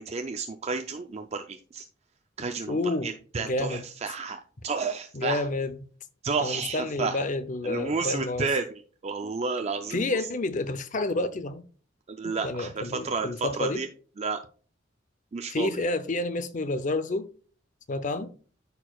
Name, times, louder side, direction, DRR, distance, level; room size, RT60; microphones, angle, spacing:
voice 1, 0.0-1.8 2.4-5.5 6.2-7.3 7.6-8.6 9.0-10.2 12.1-13.9 14.2-14.4 15.3-15.7, right 4 dB, 35° right, 0.4 m, -31 dB
voice 2, 2.7-3.1 3.4-3.8 5.1-5.9 6.4-8.5 9.9-11.6 12.2-13.8 15.5-17.3 17.9-18.3, left 2 dB, 40° left, 0.6 m, -29 dB
13.0 x 4.5 x 2.3 m
head